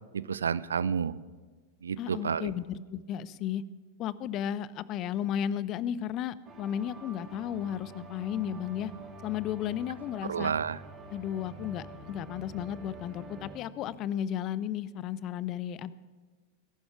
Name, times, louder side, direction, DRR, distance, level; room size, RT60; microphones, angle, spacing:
voice 1, 0.1-1.2 1.8-2.5 10.3-10.8, right 7 dB, 70° right, 19 dB, 0.4 m, -30 dB
voice 2, 2.0-3.7 4.0-8.9 9.2-10.5 11.1-15.9, left 10 dB, 35° left, 19 dB, 0.5 m, -34 dB
sound 1, 6.4-13.6, right 2 dB, 25° right, 2.1 m, -47 dB
20.5 x 11.5 x 4.8 m, 1.4 s
figure-of-eight pair, 90°, 0 cm